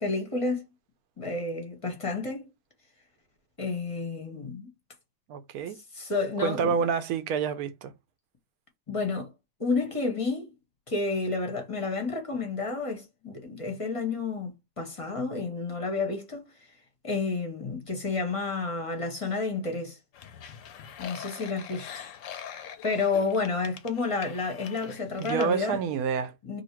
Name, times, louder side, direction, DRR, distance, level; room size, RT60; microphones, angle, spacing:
voice 1, 0.0-0.6 1.2-2.5 3.6-4.7 5.9-6.8 8.9-9.3 9.6-10.5 10.9-14.5 14.8-16.5 17.0-20.0 21.0-22.1 22.8-25.8 26.4-26.6, left 3 dB, 30° left, 0.7 m, -30 dB
voice 2, 5.3-5.8 6.4-7.9 25.2-26.3, right 6 dB, 70° right, 1.0 m, -28 dB
sound 1, 20.1-25.6, left 8 dB, 70° left, 0.8 m, -43 dB
2.8 x 2.7 x 4.3 m
omnidirectional pair, 1.7 m